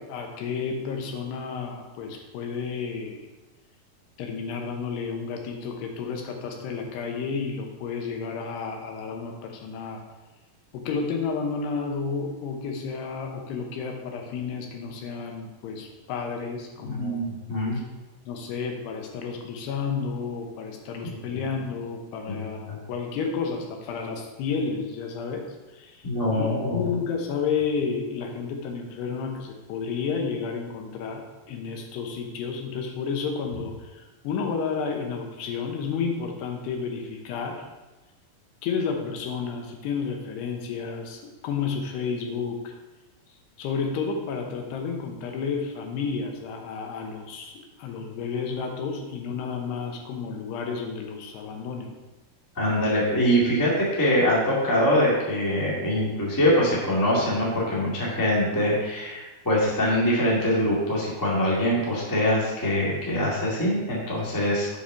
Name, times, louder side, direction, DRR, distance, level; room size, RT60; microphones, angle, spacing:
voice 1, 0.0-3.3 4.2-10.0 10.7-17.2 17.8-17.9 18.3-25.5 25.7-26.1 26.3-37.7 38.6-42.7 43.6-51.9, left 5 dB, 90° left, 3 dB, 3.1 m, -31 dB
voice 2, 16.9-17.8 21.0-21.1 22.3-22.8 26.0-26.8 52.5-64.7, equal, 25° left, -5 dB, 0.4 m, -24 dB
6.7 x 5.2 x 5.7 m, 1.1 s
omnidirectional pair, 4.7 m